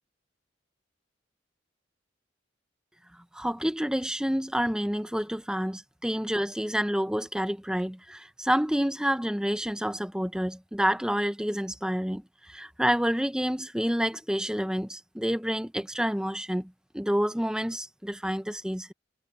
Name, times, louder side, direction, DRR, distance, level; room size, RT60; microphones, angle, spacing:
voice 1, 3.3-18.9, equal, 5° right, 1.0 m, -28 dB
head